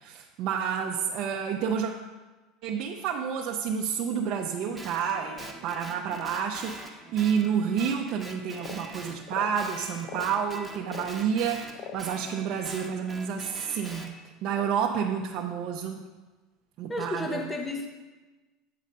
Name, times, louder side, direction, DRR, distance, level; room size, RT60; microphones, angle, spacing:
voice 1, 0.0-1.9 2.6-14.1 14.4-16.0 16.8-17.4, right 7 dB, 55° right, 0 dB, 0.6 m, -29 dB
Guitar, 4.7-9.2 9.5-14.1, right 1 dB, 5° right, 1.1 m, -44 dB
sound 1, 8.6-8.8 9.2-9.6 10.0-10.3 10.9-11.1 11.8-12.1, left 8 dB, 55° left, 0.5 m, -40 dB
voice 2, 16.9-17.9, left 1 dB, 15° left, 3 dB, 0.8 m, -32 dB
8.4 x 4.0 x 6.6 m, 1.2 s
supercardioid pair, 125°, 0 cm